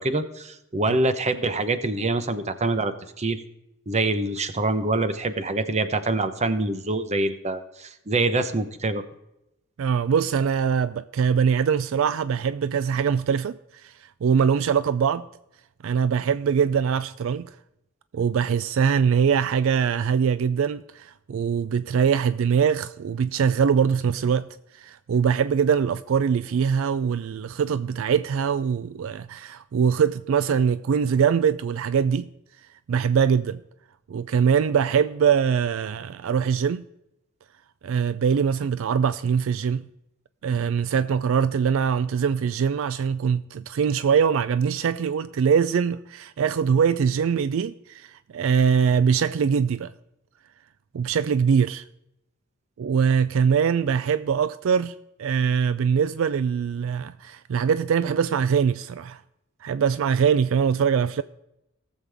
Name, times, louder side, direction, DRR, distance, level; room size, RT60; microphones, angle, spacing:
voice 1, 0.0-3.4 3.9-9.0, right 2 dB, 35° right, 0.8 m, -25 dB
voice 2, 9.8-15.3 15.8-17.5 18.1-24.5 24.7-32.3 32.9-33.6 34.1-36.8 37.8-39.9 40.4-49.9 50.9-51.8 52.8-54.9 55.2-59.2 59.6-61.2, right 7 dB, 70° right, 0.4 m, -22 dB
18.0 x 7.4 x 3.5 m
head